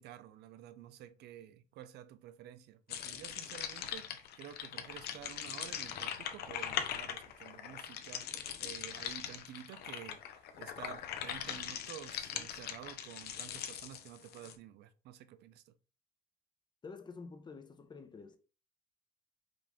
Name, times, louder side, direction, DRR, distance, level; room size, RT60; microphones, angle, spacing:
voice 1, 0.0-15.7, right 11 dB, 75° right, 0.5 m, -51 dB
sound 1, 2.9-14.6, left 9 dB, 70° left, 0.7 m, -41 dB
voice 2, 16.8-18.4, left 4 dB, 25° left, 0.7 m, -49 dB
5.1 x 2.6 x 3.5 m
cardioid pair, 110°, 17 cm